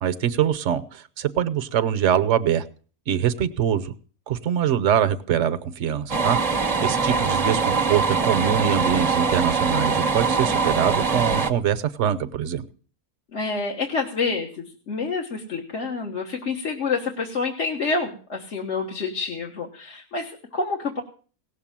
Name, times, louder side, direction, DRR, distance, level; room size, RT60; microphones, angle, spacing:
voice 1, 0.0-2.6 3.1-3.9 4.3-6.4 6.8-12.7, right 9 dB, 55° right, 12 dB, 1.1 m, -23 dB
sound 1, 6.1-11.5, right 4 dB, 30° right, 0.8 m, -23 dB
voice 2, 13.3-21.0, left 4 dB, 50° left, 1 dB, 1.6 m, -28 dB
17.5 x 6.8 x 7.4 m, 0.42 s
omnidirectional pair, 1.6 m